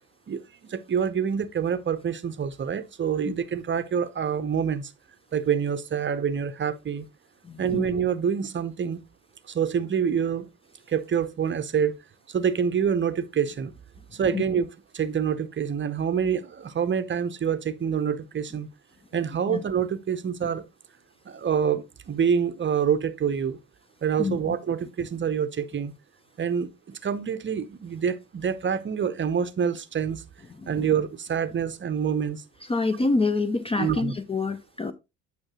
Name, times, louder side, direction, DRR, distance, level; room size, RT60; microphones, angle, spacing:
voice 1, 0.3-4.9 5.3-7.1 7.6-9.0 9.5-10.5 10.9-12.0 12.3-13.7 14.1-18.7 19.1-20.6 21.3-23.6 24.0-25.9 26.4-30.2 30.7-32.4 33.8-34.1, right 7 dB, 25° right, 0.7 m, -26 dB
voice 2, 7.4-7.8 14.3-14.4 19.5-19.6 24.2-24.6 30.6-30.9 32.7-34.9, left 3 dB, 15° left, 0.5 m, -27 dB
8.8 x 5.7 x 2.9 m
figure-of-eight pair, 55°, 42 cm